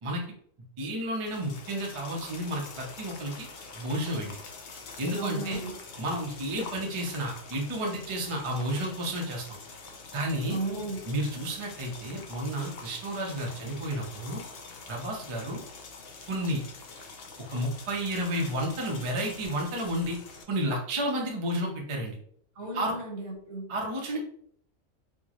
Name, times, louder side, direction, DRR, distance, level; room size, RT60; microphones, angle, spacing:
voice 1, 0.8-3.5 3.7-4.4 5.0-5.6 6.0-9.4 10.1-10.6 11.1-14.4 14.9-15.6 16.3-16.6 17.5-20.2 20.5-22.2 22.7-23.0 23.7-24.2, right 1 dB, 35° right, -1 dB, 0.6 m, -31 dB
sound 1, 1.2-20.4, left 4 dB, 60° left, 0.7 m, -45 dB
voice 2, 5.2-5.8 10.5-11.0 22.5-23.7, right 2 dB, 70° right, -1 dB, 1.5 m, -34 dB
4.4 x 2.1 x 2.9 m, 0.65 s
omnidirectional pair, 1.4 m